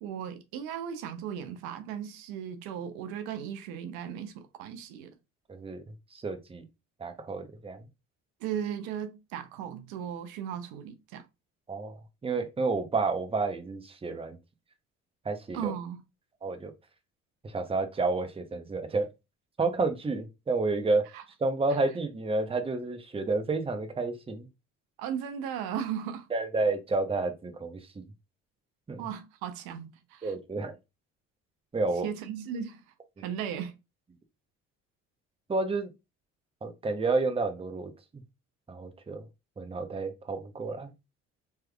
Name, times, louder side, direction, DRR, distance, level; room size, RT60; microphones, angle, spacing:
voice 1, 0.0-5.2 8.4-11.2 15.5-16.0 21.1-21.2 21.7-21.8 25.0-26.3 29.0-30.3 32.0-32.8 33.2-33.7, right 8 dB, 70° right, 0.7 m, -36 dB
voice 2, 5.5-5.8 6.1-6.6 7.0-7.8 11.7-14.4 15.2-15.7 16.4-16.7 17.4-19.1 19.6-21.1 21.4-24.5 26.3-28.0 28.9-29.1 30.2-30.8 31.7-32.1 33.2-33.3 35.5-35.9 36.6-38.2 38.7-39.2 39.6-40.9, right 3 dB, 15° right, 0.7 m, -30 dB
3.3 x 3.1 x 2.3 m
hypercardioid pair, 65°, 37 cm